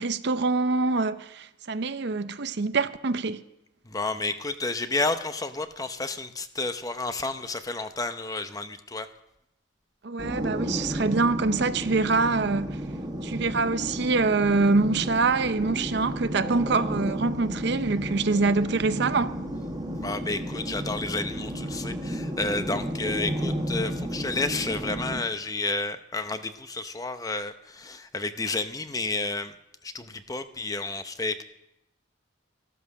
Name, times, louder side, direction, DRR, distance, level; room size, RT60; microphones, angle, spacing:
voice 1, 0.0-3.4 10.0-12.8 13.2-19.4, right 3 dB, 60° right, 0.6 m, -25 dB
voice 2, 3.9-9.1 20.0-29.5 29.8-31.4, left 3 dB, 20° left, 0.7 m, -31 dB
sound 1, 10.2-25.2, equal, 20° right, 1.8 m, -32 dB
13.5 x 12.5 x 6.3 m
head